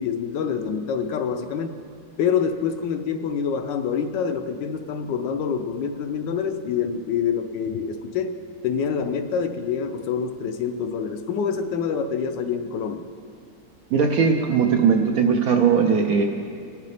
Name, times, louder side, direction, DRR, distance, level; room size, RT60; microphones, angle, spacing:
voice 1, 0.0-1.8 2.2-8.3 8.6-13.1, left 6 dB, 75° left, 7 dB, 1.3 m, -26 dB
voice 2, 13.9-16.2, right 6 dB, 65° right, 3 dB, 0.9 m, -19 dB
20.0 x 6.7 x 3.4 m, 2.3 s
omnidirectional pair, 2.1 m